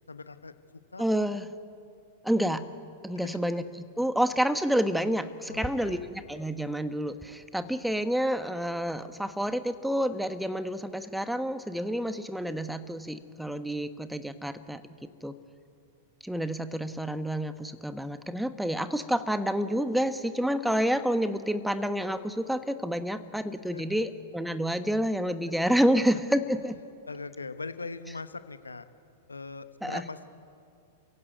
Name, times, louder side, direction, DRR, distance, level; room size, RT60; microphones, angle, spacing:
voice 1, 0.1-1.0 5.5-6.0 23.7-24.0 25.9-26.2 27.1-28.8 29.3-30.3, left 3 dB, 85° left, 12 dB, 1.1 m, -41 dB
voice 2, 1.0-1.5 2.2-2.7 3.0-14.8 15.2-15.4 16.2-26.8 29.8-30.0, equal, ahead, 11 dB, 1.2 m, -29 dB
27.5 x 16.0 x 9.4 m, 2.5 s
figure-of-eight pair, 95°, 0 cm